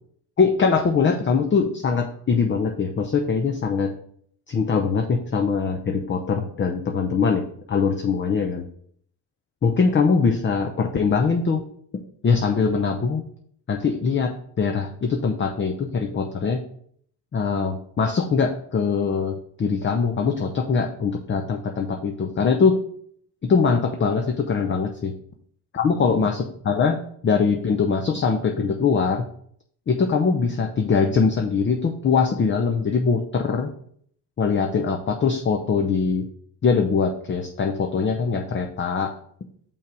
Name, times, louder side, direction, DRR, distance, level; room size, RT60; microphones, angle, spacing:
voice 1, 0.4-3.9 4.5-7.4 7.7-8.6 9.6-11.6 12.2-13.2 13.7-16.6 17.3-22.8 23.4-25.1 25.7-29.2 29.9-33.7 34.4-36.3 36.6-39.1, left 5 dB, 30° left, 4 dB, 0.6 m, -22 dB
5.3 x 3.5 x 5.2 m, 0.63 s
supercardioid pair, 75°, 41 cm